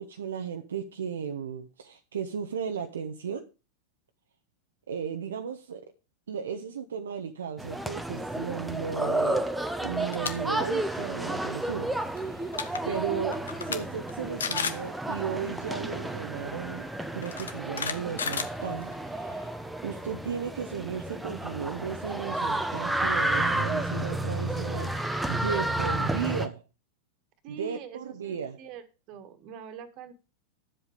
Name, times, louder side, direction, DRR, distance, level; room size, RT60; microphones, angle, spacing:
voice 1, 0.0-3.5 4.9-5.8 6.3-9.5 9.8-12.5 12.8-16.9 17.1-19.5 19.8-26.6 27.5-28.6, right 7 dB, 65° right, 0.9 m, -35 dB
sound 1, 7.6-26.5, right 1 dB, 5° right, 1.0 m, -31 dB
voice 2, 9.1-9.5 27.4-30.1, right 8 dB, 40° right, 1.8 m, -45 dB
sound 2, 10.0-10.3 10.7-11.0 12.2-12.3 12.5-12.8 13.3-13.8 14.1-14.2 14.4-14.8 16.1-16.2 17.2-19.1, left 6 dB, 70° left, 1.1 m, -32 dB
11.0 x 7.7 x 5.1 m
figure-of-eight pair, 90°, 0 cm